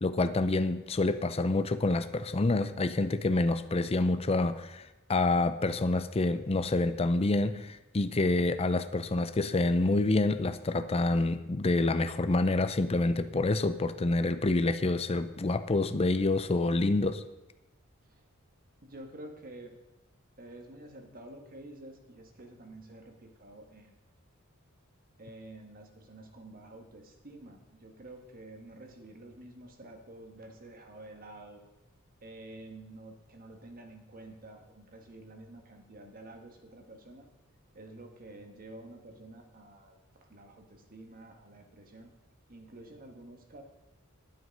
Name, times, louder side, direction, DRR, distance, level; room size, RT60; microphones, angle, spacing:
voice 1, 0.0-17.2, left 2 dB, 30° left, 11 dB, 0.5 m, -27 dB
voice 2, 18.8-19.8 20.4-24.0 25.2-31.6 32.2-37.3 37.7-42.1 42.5-43.6, right 1 dB, 45° right, 4 dB, 1.6 m, -49 dB
11.0 x 9.4 x 5.4 m, 1.0 s
head